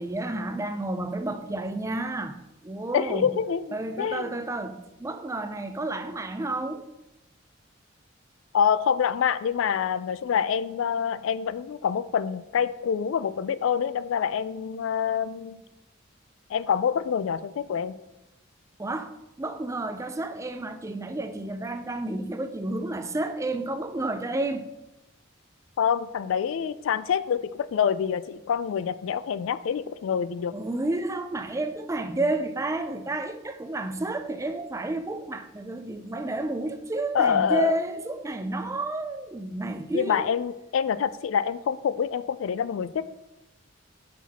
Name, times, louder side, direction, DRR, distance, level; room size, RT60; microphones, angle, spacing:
voice 1, 0.0-2.4 2.6-3.4 3.7-6.8 18.8-19.1 19.4-24.7 30.5-40.3, right 2 dB, 15° right, 8 dB, 0.4 m, -31 dB
voice 2, 2.9-4.3 8.5-15.6 16.5-18.0 25.8-30.5 37.1-37.8 39.9-43.1, left 7 dB, 75° left, 15 dB, 0.3 m, -26 dB
6.1 x 5.9 x 4.2 m, 0.94 s
head